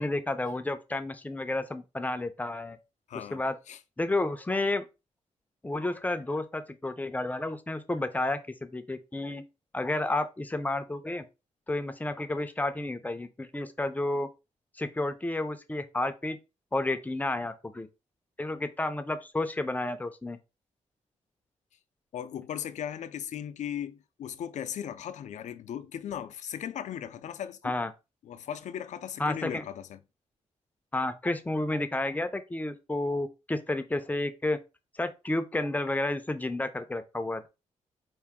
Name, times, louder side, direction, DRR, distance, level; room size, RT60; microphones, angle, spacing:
voice 1, 0.0-2.8 3.1-3.5 4.0-4.8 5.6-9.4 9.7-11.2 11.7-14.3 14.8-16.4 16.7-17.9 18.4-20.4 27.6-27.9 29.2-29.6 30.9-34.6 34.9-37.5, left 2 dB, 15° left, 0.5 m, -31 dB
voice 2, 3.1-3.4 3.7-3.8 22.1-27.7 28.2-30.0, left 9 dB, 75° left, 0.5 m, -37 dB
4.7 x 2.5 x 3.5 m
cardioid pair, 115°, 12 cm